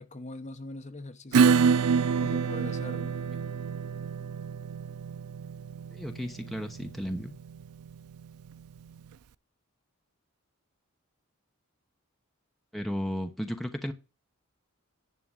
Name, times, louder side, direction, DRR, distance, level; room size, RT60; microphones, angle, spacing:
voice 1, 0.0-1.6 2.2-3.1, left 2 dB, 30° left, 1.0 m, -42 dB
Acoustic guitar / Strum, 1.3-8.5, right 6 dB, 85° right, 0.4 m, -27 dB
voice 2, 5.9-7.3 12.7-13.9, equal, ahead, 0.9 m, -34 dB
11.0 x 3.7 x 7.4 m
head